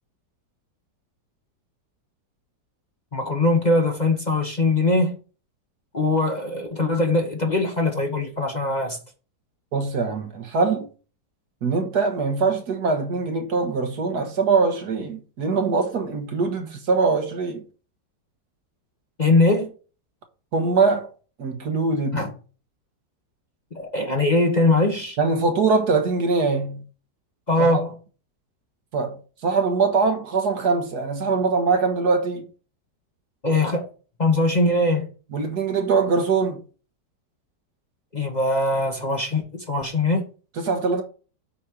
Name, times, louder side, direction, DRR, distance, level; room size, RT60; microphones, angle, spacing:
voice 1, 3.1-5.2 5.9-9.0 19.2-19.7 22.1-22.3 23.7-25.2 27.5-27.9 33.4-33.8 34.2-35.0 38.1-40.2, left 2 dB, 25° left, 1.3 m, -21 dB
voice 2, 9.7-10.9 11.6-17.6 20.5-21.1 21.4-22.3 25.2-26.8 27.6-27.7 28.9-32.5 35.3-36.6 40.6-41.0, right 4 dB, 65° right, 1.7 m, -22 dB
8.5 x 4.2 x 6.4 m
omnidirectional pair, 1.9 m